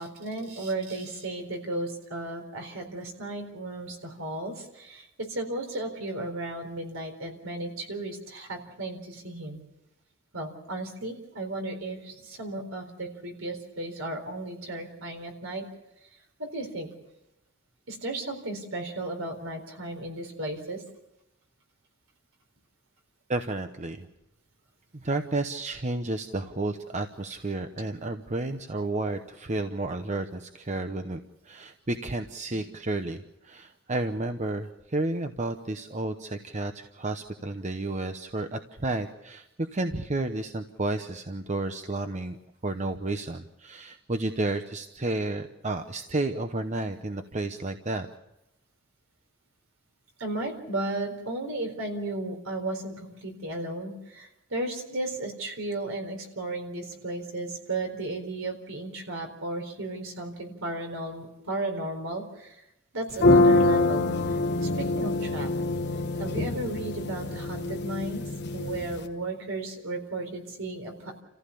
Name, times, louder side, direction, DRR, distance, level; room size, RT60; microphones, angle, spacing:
voice 1, 0.0-9.6 10.3-15.6 16.4-16.9 17.9-20.8 32.5-32.6 50.2-62.6 62.9-64.1 64.6-65.5 66.2-68.3 68.5-71.2, right 2 dB, 70° right, 4 dB, 4.2 m, -34 dB
voice 2, 23.3-24.1 24.9-31.2 31.4-42.4 42.6-48.1, right 2 dB, 35° right, 7 dB, 0.9 m, -31 dB
sound 1, 63.1-69.0, left 2 dB, 55° left, 1.3 m, -25 dB
29.5 x 15.0 x 7.0 m, 0.87 s
head